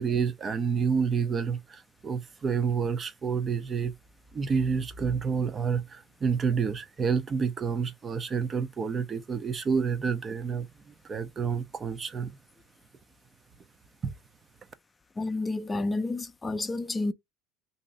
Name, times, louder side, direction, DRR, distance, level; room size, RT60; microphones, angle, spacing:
voice 1, 0.0-3.9 4.3-12.3 14.0-14.1, right 6 dB, 35° right, 0.5 m, -29 dB
voice 2, 15.2-17.1, left 2 dB, 20° left, 0.5 m, -30 dB
3.0 x 2.7 x 4.0 m
supercardioid pair, 85°, 0 cm